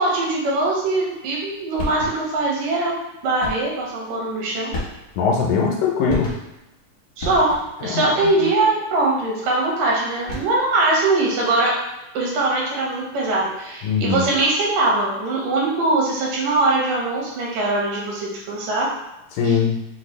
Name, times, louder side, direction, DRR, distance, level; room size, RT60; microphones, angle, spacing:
voice 1, 0.0-3.0 3.2-4.8 7.2-11.8 12.1-18.9 19.4-19.5, right 2 dB, 75° right, -3 dB, 2.5 m, -21 dB
sound 1, 1.8-2.4 3.4-3.8 4.7-5.3 6.1-6.7 7.2-7.9 10.1-10.7, left 2 dB, 60° left, 1.0 m, -32 dB
voice 2, 5.2-6.3 7.8-8.3 13.8-14.2 19.3-19.8, left 5 dB, 80° left, 0 dB, 2.2 m, -21 dB
5.9 x 2.3 x 3.1 m, 0.94 s
omnidirectional pair, 3.9 m